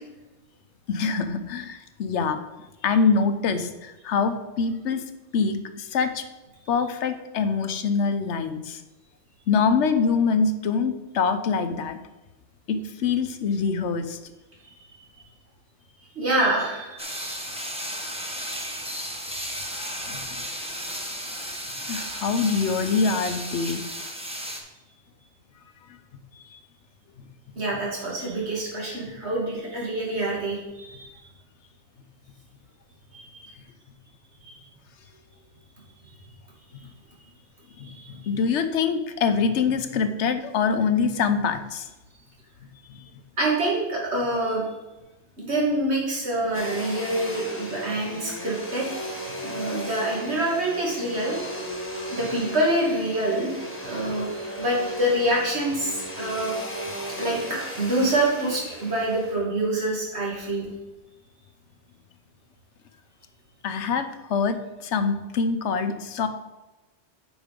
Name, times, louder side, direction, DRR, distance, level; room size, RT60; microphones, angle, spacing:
voice 1, 0.9-2.4 2.8-5.0 5.3-6.2 6.7-8.8 9.5-12.0 12.7-14.2 20.1-20.3 21.9-23.8 26.5-26.6 37.8-41.9 42.9-43.0 63.6-66.3, left 5 dB, 85° left, 9 dB, 1.1 m, -24 dB
voice 2, 16.2-17.4 18.4-18.7 27.6-31.1 33.1-33.4 34.4-34.6 37.8-38.1 43.4-44.6 45.4-48.9 49.4-51.4 52.1-53.5 53.9-54.3 54.6-56.5 57.2-60.7, right 1 dB, 70° right, -4 dB, 2.6 m, -26 dB
sound 1, 17.0-24.6, equal, 5° right, 1.1 m, -34 dB
Domestic sounds home sounds, 46.5-59.3, equal, 10° left, 1.3 m, -36 dB
8.1 x 5.3 x 5.1 m, 1.1 s
omnidirectional pair, 1.2 m